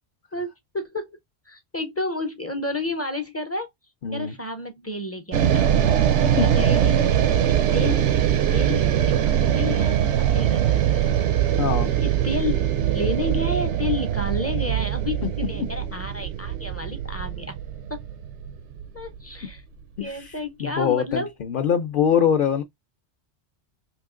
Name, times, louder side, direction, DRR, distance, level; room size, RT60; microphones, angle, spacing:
voice 1, 0.3-1.2 1.5-3.7 4.1-5.8 6.2-7.0 7.5-11.3 12.0-17.6 17.9-18.1 18.9-19.6 20.0-21.3, left 2 dB, 20° left, 0.4 m, -31 dB
voice 2, 4.0-4.3 6.3-6.5 11.6-11.9 15.2-15.3 15.6-15.7 20.0-20.3 20.6-22.6, left 8 dB, 60° left, 0.6 m, -23 dB
sound 1, 5.3-19.6, right 10 dB, 80° right, 0.9 m, -22 dB
3.1 x 2.8 x 3.6 m
omnidirectional pair, 1.2 m